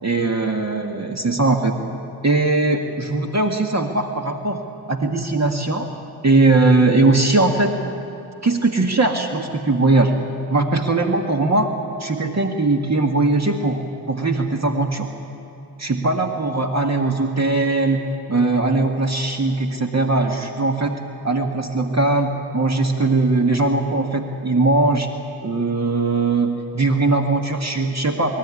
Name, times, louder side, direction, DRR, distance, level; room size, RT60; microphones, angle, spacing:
voice 1, 0.0-1.8 2.2-4.6 4.9-5.9 6.2-7.8 8.4-10.2 10.5-11.7 12.0-15.1 15.8-21.0 21.2-25.1 25.4-28.4, right 3 dB, 40° right, 3 dB, 1.9 m, -20 dB
23.5 x 13.0 x 9.8 m, 2.9 s
cardioid pair, 50°, 41 cm